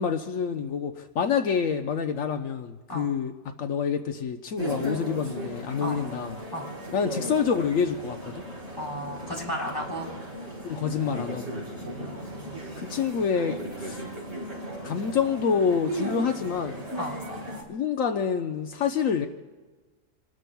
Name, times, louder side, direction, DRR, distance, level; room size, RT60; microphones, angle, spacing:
voice 1, 0.0-3.3 3.6-6.3 6.9-8.4 10.6-11.6 12.8-14.0 14.8-16.8 17.7-19.3, left 6 dB, 75° left, 5 dB, 1.3 m, -27 dB
sound 1, 4.6-17.6, right 1 dB, 50° right, 4.5 m, -36 dB
voice 2, 8.8-10.1 11.8-12.9 17.0-17.1, equal, 15° left, -2 dB, 4.1 m, -35 dB
28.0 x 19.5 x 2.3 m, 1.3 s
omnidirectional pair, 1.4 m